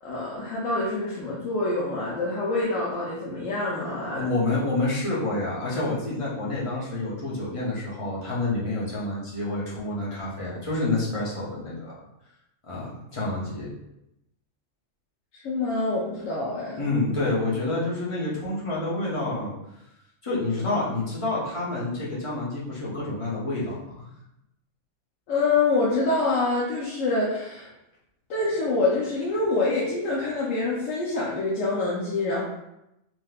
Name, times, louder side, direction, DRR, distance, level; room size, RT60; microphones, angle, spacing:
voice 1, 0.0-4.3 15.3-16.9 25.3-27.7 28.3-32.4, left 3 dB, 75° left, -6 dB, 1.0 m, -26 dB
voice 2, 4.1-12.0 12.7-13.7 16.7-19.5 20.2-24.1, left 2 dB, 30° left, -7 dB, 0.7 m, -28 dB
3.4 x 2.7 x 2.3 m, 0.88 s
omnidirectional pair, 1.3 m